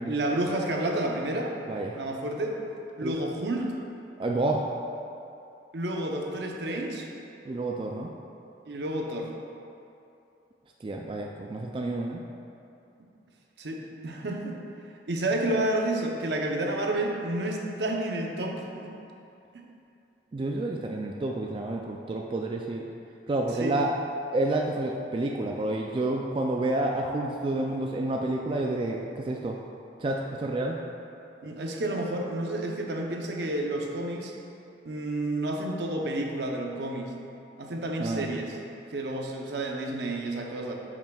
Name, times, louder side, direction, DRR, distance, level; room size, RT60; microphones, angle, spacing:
voice 1, 0.1-1.5 2.0-2.6 3.0-3.7 5.7-7.1 8.7-9.3 13.6-14.6 15.1-18.9 19.5-19.6 23.6-23.8 31.4-34.3 34.8-37.1 37.6-38.6 38.9-40.7, right 1 dB, 70° right, 1 dB, 0.7 m, -30 dB
voice 2, 1.7-2.0 3.0-3.2 4.2-4.6 7.4-8.1 10.8-12.2 20.3-22.9 23.3-23.9 24.3-29.6 30.0-30.8 38.0-38.3, right 2 dB, 30° right, 0 dB, 0.3 m, -29 dB
8.7 x 6.0 x 2.3 m, 2.7 s
head